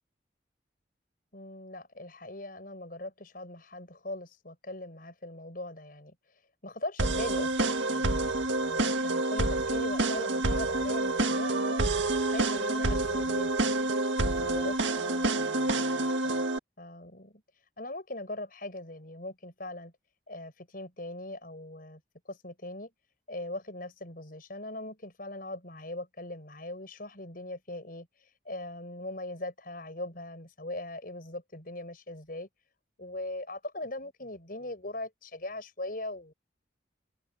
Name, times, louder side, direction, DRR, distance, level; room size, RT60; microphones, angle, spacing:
voice 1, 1.3-6.2 6.6-13.7 14.2-16.5 16.8-17.4 17.8-19.9 20.3-22.0 22.3-22.9 23.3-32.5 33.0-36.3, left 2 dB, 50° left, 6.2 m, -40 dB
sound 1, 7.0-16.6, right 2 dB, 80° right, 1.8 m, -28 dB
head